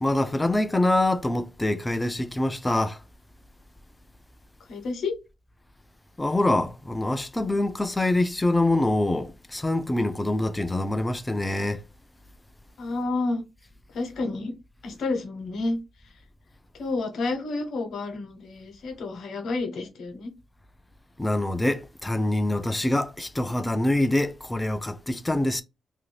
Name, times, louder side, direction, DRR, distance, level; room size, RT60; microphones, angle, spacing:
voice 1, 0.0-3.0 6.2-11.8 21.2-25.6, left 1 dB, 15° left, 0.3 m, -25 dB
voice 2, 4.7-5.1 12.8-13.4 13.9-14.5 14.8-15.8 16.8-20.3, left 3 dB, 75° left, 0.8 m, -30 dB
2.7 x 2.6 x 3.1 m
wide cardioid pair, 130°, 0 cm